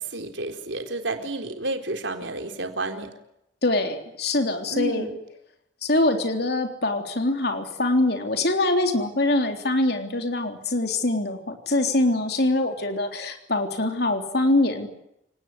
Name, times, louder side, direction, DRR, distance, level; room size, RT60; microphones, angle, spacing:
voice 1, 0.0-3.1 4.7-5.2, right 2 dB, 80° right, 5 dB, 4.0 m, -31 dB
voice 2, 3.6-5.1 5.8-14.9, left 2 dB, 55° left, 4 dB, 3.5 m, -24 dB
29.0 x 18.5 x 9.6 m, 0.81 s
head